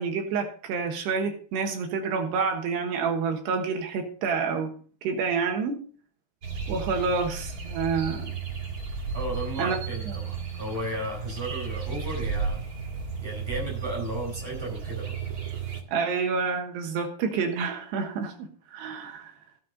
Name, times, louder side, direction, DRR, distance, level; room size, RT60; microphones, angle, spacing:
voice 1, 0.0-4.7 5.0-5.8 6.7-8.3 9.6-9.8 15.9-19.3, right 5 dB, 80° right, 4 dB, 3.4 m, -28 dB
sound 1, 6.4-15.8, right 6 dB, 50° right, 1.0 m, -34 dB
voice 2, 9.1-12.6 13.2-15.1, right 1 dB, 5° right, -2 dB, 4.4 m, -34 dB
15.0 x 9.5 x 3.9 m, 0.42 s
omnidirectional pair, 4.8 m